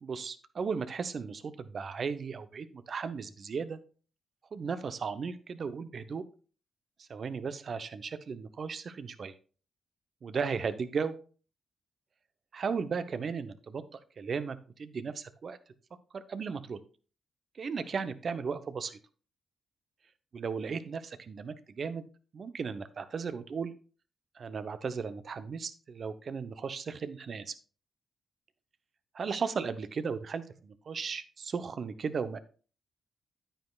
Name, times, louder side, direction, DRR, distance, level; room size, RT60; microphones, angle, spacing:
voice 1, 0.0-3.8 4.5-6.2 7.0-9.3 10.2-11.2 12.5-13.8 14.2-15.6 16.1-16.8 17.6-19.0 20.3-22.0 22.3-23.7 24.4-27.5 29.1-32.4, right 5 dB, 55° right, 11 dB, 0.8 m, -36 dB
9.6 x 9.0 x 2.4 m, 0.39 s
hypercardioid pair, 40°, 0 cm